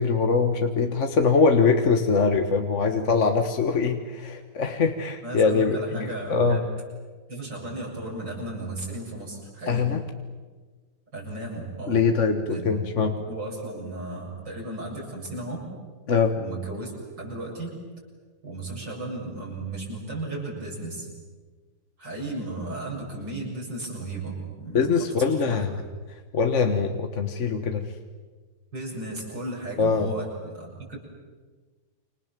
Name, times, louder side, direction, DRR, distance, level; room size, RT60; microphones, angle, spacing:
voice 1, 0.0-6.6 9.7-10.0 11.9-13.1 16.1-16.3 24.7-25.7 26.3-27.8 29.8-30.1, left 5 dB, 40° left, 6 dB, 1.6 m, -23 dB
voice 2, 5.2-6.7 7.3-9.9 11.1-12.0 12.5-12.8 13.0-15.6 16.3-16.9 17.2-17.8 18.4-21.1 22.0-24.8 25.3-25.6 28.7-31.0, right 2 dB, 60° right, -2 dB, 8.3 m, -35 dB
29.0 x 26.5 x 7.6 m, 1.4 s
omnidirectional pair, 2.1 m